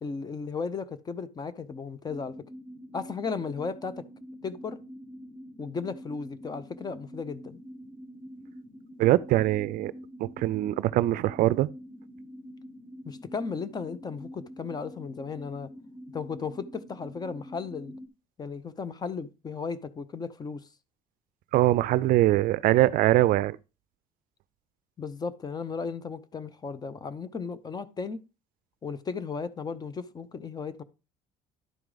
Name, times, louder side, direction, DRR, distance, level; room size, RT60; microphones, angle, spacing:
voice 1, 0.0-2.3 2.9-4.0 4.4-4.8 5.6-7.6 13.1-15.7 16.1-18.0 18.4-20.6 25.0-28.2 28.8-30.8, left 5 dB, 25° left, 0.6 m, -35 dB
sound 1, 2.0-18.1, equal, 15° right, 1.0 m, -46 dB
voice 2, 9.0-9.9 10.2-11.7 21.5-23.6, right 15 dB, 65° right, 0.4 m, -22 dB
11.0 x 4.6 x 3.9 m
cardioid pair, 120°, 15 cm